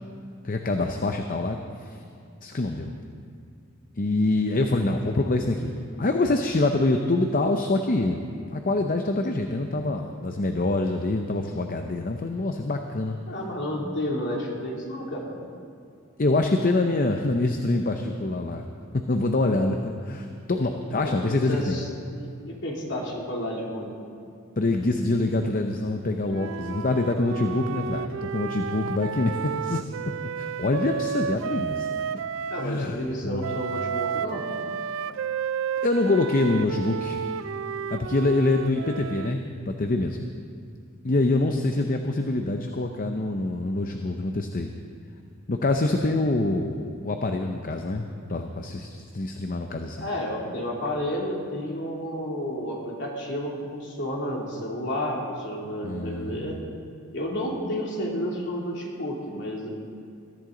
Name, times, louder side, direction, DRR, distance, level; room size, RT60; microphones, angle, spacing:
voice 1, 0.4-2.0 2.4-2.9 4.0-8.2 8.5-13.2 16.2-18.7 18.9-21.8 24.6-29.8 30.4-31.9 32.5-33.5 35.8-37.2 37.9-40.2 41.0-44.7 45.5-50.1 55.8-56.6, left 2 dB, 40° left, 5 dB, 0.6 m, -25 dB
voice 2, 13.3-15.3 21.0-23.9 32.5-34.4 50.0-56.6 57.1-59.7, equal, 55° left, -2 dB, 2.8 m, -31 dB
Wind instrument woodwind instrument, 26.3-32.7 33.4-39.4, right 7 dB, 65° right, 0.3 m, -32 dB
21.5 x 13.5 x 3.9 m, 2.4 s
head